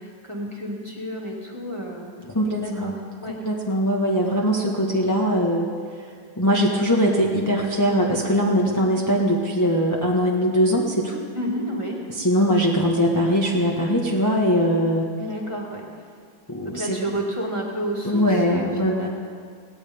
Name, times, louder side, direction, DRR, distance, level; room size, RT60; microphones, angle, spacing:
voice 1, 0.0-2.1 2.6-3.4 11.3-12.0 15.1-15.8 16.6-19.1, equal, 15° right, -1 dB, 1.9 m, -31 dB
voice 2, 2.3-2.9 3.4-5.7 6.4-11.2 12.2-15.1 16.5-17.1 18.0-19.1, equal, 10° left, -2 dB, 1.1 m, -21 dB
18.5 x 17.5 x 3.6 m, 2.1 s
omnidirectional pair, 2.1 m